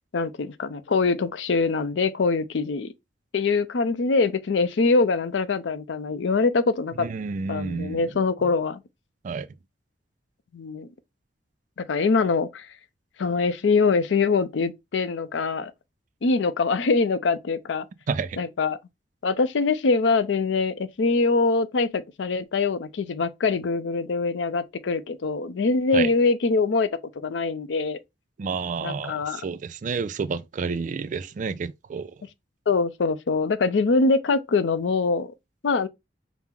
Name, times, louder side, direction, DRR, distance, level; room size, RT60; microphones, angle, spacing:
voice 1, 0.1-2.9 3.3-7.1 7.5-8.8 10.5-10.9 11.8-12.7 13.2-15.7 16.2-17.9 18.4-18.8 19.2-26.9 27.2-28.0 28.8-29.4 32.7-35.3 35.6-35.9, left 4 dB, 85° left, 0.5 m, -23 dB
voice 2, 7.0-8.0 8.4-8.5 9.2-9.5 18.1-18.4 25.9-26.1 28.4-32.2, right 5 dB, 45° right, 0.3 m, -30 dB
5.8 x 2.0 x 3.6 m
head